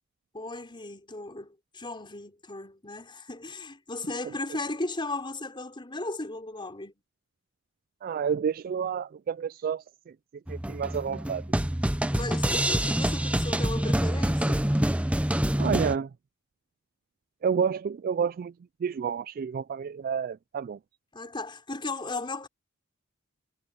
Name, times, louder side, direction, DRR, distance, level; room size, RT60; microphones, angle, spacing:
voice 1, 0.3-6.9 12.1-14.7 21.1-22.5, left 2 dB, 25° left, 4.5 m, -36 dB
voice 2, 8.0-9.8 10.5-11.4 15.6-16.1 17.4-18.5 18.8-20.8, right 7 dB, 45° right, 0.3 m, -29 dB
sound 1, 10.5-16.0, right 1 dB, 5° right, 0.7 m, -26 dB
head